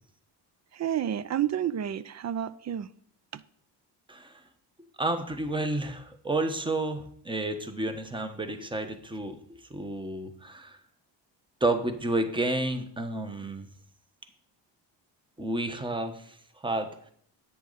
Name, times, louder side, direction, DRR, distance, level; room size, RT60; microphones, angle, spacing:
voice 1, 0.7-2.9 3.3-3.4, right 10 dB, 40° right, 0.5 m, -30 dB
voice 2, 4.1-4.4 5.0-9.4 9.7-10.8 11.6-13.7 15.4-17.1, right 2 dB, 10° right, 1.2 m, -31 dB
10.0 x 8.8 x 4.1 m
cardioid pair, 90°, 45 cm